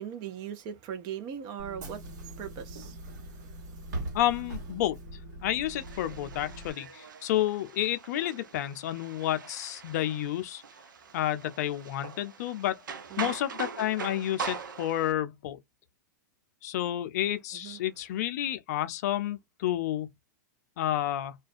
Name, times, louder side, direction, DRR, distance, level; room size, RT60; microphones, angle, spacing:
voice 1, 0.0-3.6 6.5-6.6 13.1-13.3 17.5-17.8, right 9 dB, 40° right, 0.6 m, -40 dB
Bus / Engine, 1.6-6.7, right 1 dB, 65° right, 1.2 m, -41 dB
voice 2, 4.1-5.0 5.4-10.6 11.1-12.8 13.2-15.6 16.6-20.1 20.8-21.3, left 12 dB, 60° left, 0.5 m, -30 dB
sound 1, 5.6-15.1, right 6 dB, 85° right, 0.5 m, -42 dB
2.4 x 2.2 x 2.4 m
hypercardioid pair, 120°, 10 cm